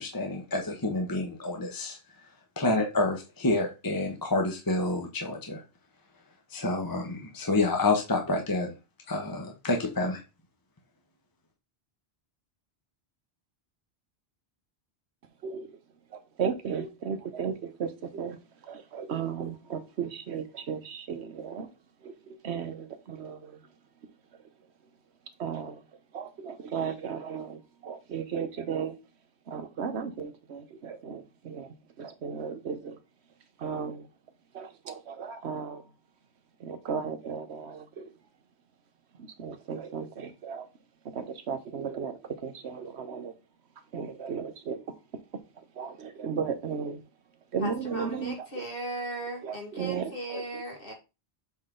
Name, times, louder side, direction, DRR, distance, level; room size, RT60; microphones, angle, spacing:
voice 1, 0.0-2.0 2.6-5.6 6.5-8.7 9.1-10.2, left 2 dB, 20° left, 1 dB, 1.0 m, -28 dB
voice 2, 16.1-18.4 18.6-21.7 22.0-23.6 24.0-24.1 25.4-25.8 26.1-29.0 29.5-33.0 33.6-34.1 34.5-35.8 36.6-38.1 39.2-40.7 41.1-43.3 43.9-44.8 45.6-47.0 47.5-48.6 49.4-50.6, right 6 dB, 85° right, 10 dB, 1.2 m, -35 dB
voice 3, 47.6-50.9, right 1 dB, 55° left, 0 dB, 2.1 m, -37 dB
7.5 x 3.8 x 3.8 m, 0.28 s
omnidirectional pair, 1.1 m